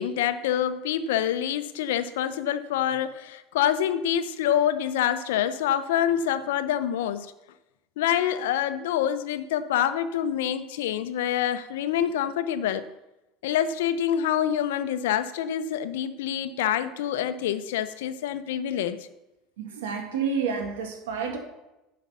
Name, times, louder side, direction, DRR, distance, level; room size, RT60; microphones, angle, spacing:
voice 1, 0.0-7.3 8.0-12.9 13.4-19.1, left 10 dB, 75° left, 12 dB, 0.7 m, -26 dB
voice 2, 19.6-21.4, right 6 dB, 80° right, 4 dB, 1.9 m, -29 dB
9.9 x 5.1 x 6.7 m, 0.97 s
hypercardioid pair, 80°, 0 cm